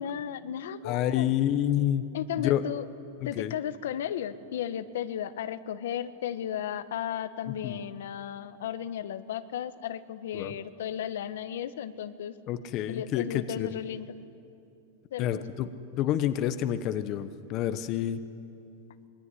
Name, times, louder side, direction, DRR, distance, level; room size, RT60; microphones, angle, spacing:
voice 1, 0.0-1.3 2.1-2.8 3.2-12.3 12.9-14.1 15.1-15.4, left 10 dB, 75° left, 12 dB, 1.1 m, -34 dB
voice 2, 0.8-2.0 2.4-2.6 3.2-3.5 7.6-7.8 10.3-10.5 12.5-13.7 15.2-18.2, left 11 dB, 35° left, 11 dB, 1.0 m, -28 dB
26.0 x 21.5 x 9.9 m, 2.7 s
supercardioid pair, 160°, 0 cm